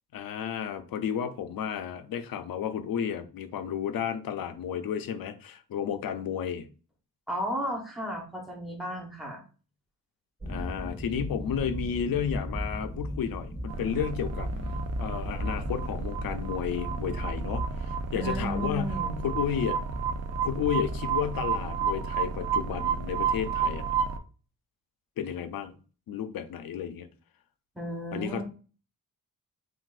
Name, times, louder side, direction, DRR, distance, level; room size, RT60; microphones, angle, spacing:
voice 1, 0.1-6.7 10.4-14.5 15.0-19.8 20.4-23.9 25.2-25.8 26.1-27.1 28.1-28.4, left 8 dB, 75° left, 0.6 m, -32 dB
voice 2, 7.3-9.4 18.1-19.3 27.7-28.4, equal, ahead, 1.0 m, -34 dB
sound 1, 10.4-21.0, equal, 25° right, 2.2 m, -37 dB
sound 2, 13.7-24.2, right 6 dB, 45° right, 0.5 m, -31 dB
6.0 x 2.5 x 2.4 m
wide cardioid pair, 165°, 35 cm